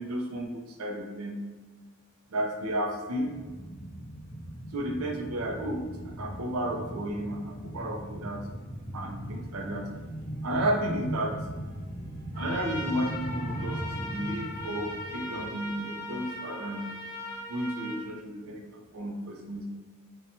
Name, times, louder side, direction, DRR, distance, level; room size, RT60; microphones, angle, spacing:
voice 1, 0.0-1.4 2.3-3.3 4.7-8.4 8.9-9.9 10.4-11.4 12.4-17.0 17.5-19.7, right 1 dB, 75° right, 1 dB, 0.5 m, -33 dB
sound 1, 3.2-16.4 16.7-16.8, right 1 dB, 90° left, 0.8 m, -39 dB
Trumpet, 12.3-18.0, left 1 dB, 35° left, 0.8 m, -39 dB
2.8 x 2.2 x 2.6 m, 1.3 s
head